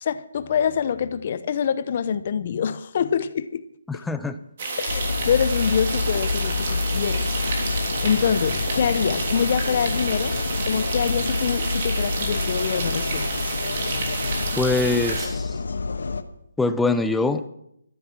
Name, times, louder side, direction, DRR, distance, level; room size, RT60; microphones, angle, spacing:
voice 1, 0.0-3.6 3.9-4.0 4.8-7.3 7.7-10.4 10.6-13.3, left 7 dB, 35° left, 14 dB, 0.8 m, -25 dB
voice 2, 3.9-4.4 14.6-15.6 16.6-17.4, left 3 dB, 5° left, 9 dB, 0.5 m, -23 dB
sound 1, 4.6-15.3, right 3 dB, 35° right, 3.4 m, -30 dB
sound 2, 4.9-16.2, left 4 dB, 70° left, 1.3 m, -28 dB
13.5 x 11.5 x 6.1 m, 0.77 s
hypercardioid pair, 170°, 0 cm